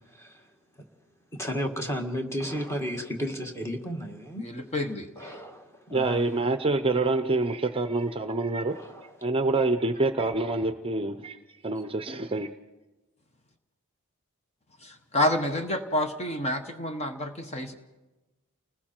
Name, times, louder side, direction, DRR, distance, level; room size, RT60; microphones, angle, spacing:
voice 1, 0.1-0.4 1.3-4.4 5.2-6.2 8.7-9.2 10.2-10.3, equal, 10° left, 2 dB, 1.9 m, -33 dB
voice 2, 4.4-5.3 14.8-17.7, left 1 dB, 30° left, 6 dB, 1.1 m, -29 dB
voice 3, 5.9-8.8 9.2-11.4 11.6-12.5, right 2 dB, 25° right, 9 dB, 0.7 m, -26 dB
29.5 x 20.0 x 4.5 m, 1.1 s
head